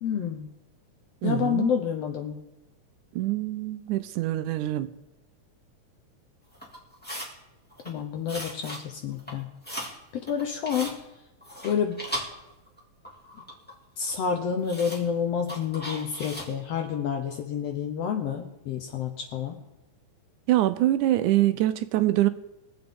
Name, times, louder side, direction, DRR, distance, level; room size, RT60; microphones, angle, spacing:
voice 1, 0.0-0.5 1.2-2.4 7.8-9.5 10.3-11.0 11.6-12.0 14.0-19.6, left 7 dB, 70° left, 4 dB, 1.6 m, -29 dB
voice 2, 1.2-1.7 3.1-4.9 20.5-22.3, right 14 dB, 80° right, 11 dB, 2.0 m, -24 dB
sound 1, 6.5-7.3 7.7-8.0 8.3-8.8 9.1-10.0 10.3-11.0 11.4-12.8 13.0-13.8 14.1-14.2 14.6-15.0 15.5-16.5, equal, 5° left, 1.4 m, -37 dB
22.5 x 7.9 x 3.6 m, 0.95 s
omnidirectional pair, 3.6 m